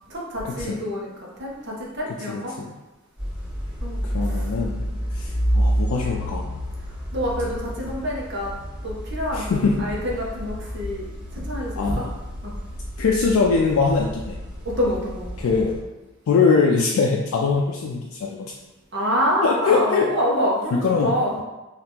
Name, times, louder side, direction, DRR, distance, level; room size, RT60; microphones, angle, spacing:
voice 1, 0.1-2.5 3.8-4.5 4.9-5.0 7.1-8.5 8.8-12.0 12.4-12.5 14.6-15.2 18.9-21.4, equal, 55° right, -4 dB, 0.8 m, -27 dB
voice 2, 2.3-2.7 4.0-4.8 5.1-6.5 9.3-9.8 11.8-12.1 13.0-14.3 15.4-15.7 16.3-18.5 19.4-21.4, left 4 dB, 90° left, -2 dB, 0.3 m, -22 dB
sound 1, 3.2-15.8, equal, 5° right, 0.9 m, -29 dB
2.8 x 2.4 x 3.4 m, 1.1 s
head